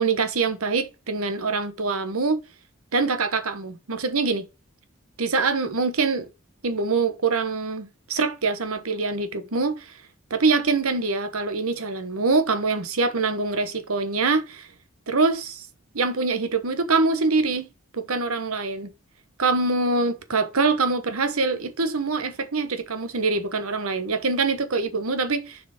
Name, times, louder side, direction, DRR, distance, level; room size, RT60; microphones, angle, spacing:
voice 1, 0.0-2.4 2.9-4.4 5.2-6.3 6.6-9.9 10.3-14.7 15.1-15.7 15.9-18.9 19.4-25.6, right 3 dB, 80° right, 1.2 m, -24 dB
6.8 x 4.8 x 6.5 m
head